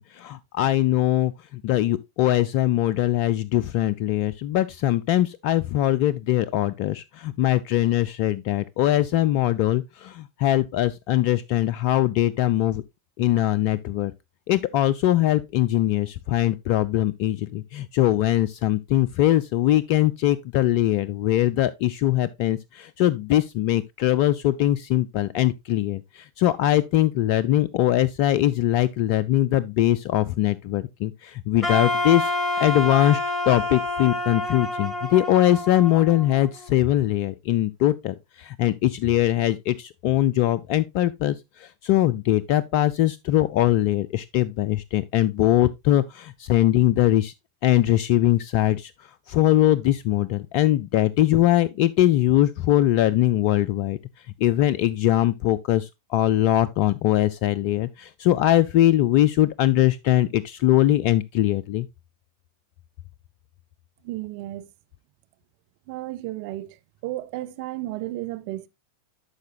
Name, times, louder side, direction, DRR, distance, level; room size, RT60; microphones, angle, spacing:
voice 1, 0.0-12.8 13.2-14.1 14.5-32.3 32.6-33.2 33.5-47.3 47.6-48.9 49.3-54.0 54.4-61.9, left 13 dB, 45° left, 0.3 m, -21 dB
Wind instrument woodwind instrument, 31.6-36.7, left 2 dB, 20° left, 1.4 m, -28 dB
voice 2, 64.0-64.6 65.9-66.7 67.0-68.7, right 16 dB, 45° right, 0.5 m, -33 dB
11.5 x 4.7 x 2.7 m
figure-of-eight pair, 90°, 0 cm